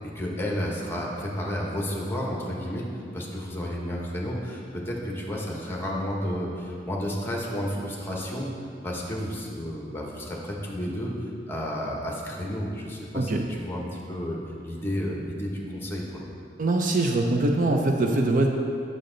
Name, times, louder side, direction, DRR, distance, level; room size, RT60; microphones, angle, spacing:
voice 1, 0.0-2.8 3.1-8.5 8.8-13.3 13.6-16.2, equal, 15° left, -2 dB, 1.1 m, -31 dB
voice 2, 16.6-18.5, right 2 dB, 45° right, 2 dB, 0.6 m, -23 dB
8.4 x 6.4 x 3.9 m, 2.4 s
head